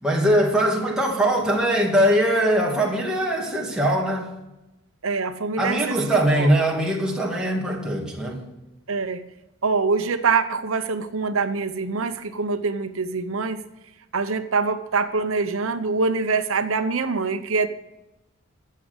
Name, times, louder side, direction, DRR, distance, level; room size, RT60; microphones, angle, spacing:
voice 1, 0.0-4.3 5.6-8.4, right 1 dB, 5° right, 2.4 m, -21 dB
voice 2, 5.0-6.6 8.9-9.2 9.6-13.6 14.1-17.7, right 4 dB, 80° right, 0.8 m, -24 dB
13.5 x 7.6 x 8.1 m
head